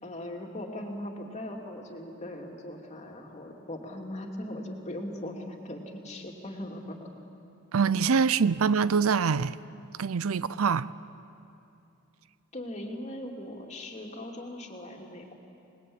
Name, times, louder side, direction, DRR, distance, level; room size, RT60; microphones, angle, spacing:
voice 1, 0.0-7.1 12.5-15.3, left 1 dB, 30° left, 2.7 m, -39 dB
voice 2, 7.7-9.6 10.0-10.9, right 5 dB, 80° right, 0.5 m, -24 dB
28.0 x 20.5 x 8.7 m
head